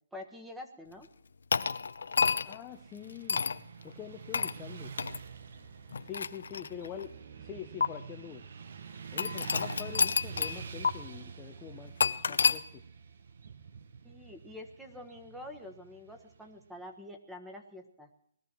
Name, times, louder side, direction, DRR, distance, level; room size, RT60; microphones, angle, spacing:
voice 1, 0.1-1.1 14.0-18.1, left 1 dB, 5° right, 4 dB, 1.5 m, -46 dB
sound 1, 1.5-2.6 3.3-3.6 4.3-4.6 5.0-5.2 5.9-7.0 7.8-7.9 9.2-10.6 10.8-10.9 12.0-12.6, left 5 dB, 75° left, 0.8 m, -29 dB
voice 2, 2.4-3.4 3.8-4.9 6.1-7.1 7.4-8.4 9.1-11.9 12.3-12.8, left 10 dB, 15° left, 4 dB, 0.8 m, -44 dB
Motorcycle / Traffic noise roadway noise, 2.7-16.8, right 6 dB, 60° right, 1.2 m, -47 dB
20.0 x 13.5 x 4.6 m, 0.66 s
hypercardioid pair, 160°, 0 cm